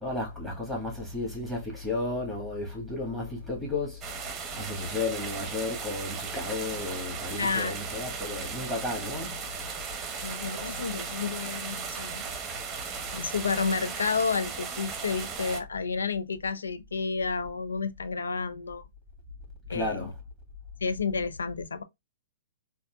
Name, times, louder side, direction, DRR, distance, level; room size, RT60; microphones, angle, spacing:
voice 1, 0.0-4.0 4.5-9.5 19.7-20.1, left 2 dB, 5° left, 1.5 m, -33 dB
sound 1, 4.0-15.6, right 6 dB, 20° right, 0.8 m, -37 dB
voice 2, 7.4-7.8 10.2-12.2 13.1-18.9 19.7-20.1 20.8-21.8, left 5 dB, 85° left, 0.4 m, -30 dB
4.1 x 2.4 x 2.2 m
hypercardioid pair, 120°, 0 cm